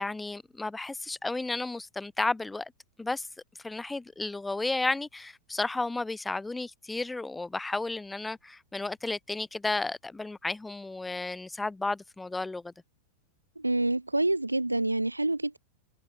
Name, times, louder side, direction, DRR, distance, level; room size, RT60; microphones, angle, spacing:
voice 1, 0.0-2.7 3.0-3.3 3.6-12.7, left 2 dB, 10° left, 3.1 m, -33 dB
voice 2, 13.6-15.6, right 2 dB, 85° right, 1.2 m, -27 dB
figure-of-eight pair, 90°, 0 cm